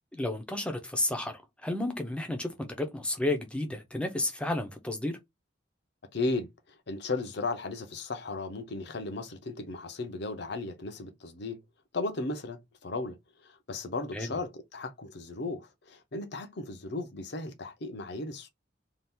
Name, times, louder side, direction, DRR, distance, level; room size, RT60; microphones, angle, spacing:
voice 1, 0.1-5.2 14.1-14.3, left 2 dB, 5° left, 0.6 m, -32 dB
voice 2, 6.1-11.6 11.9-13.2 13.4-18.5, left 3 dB, 60° left, 0.7 m, -35 dB
2.8 x 2.4 x 3.5 m
head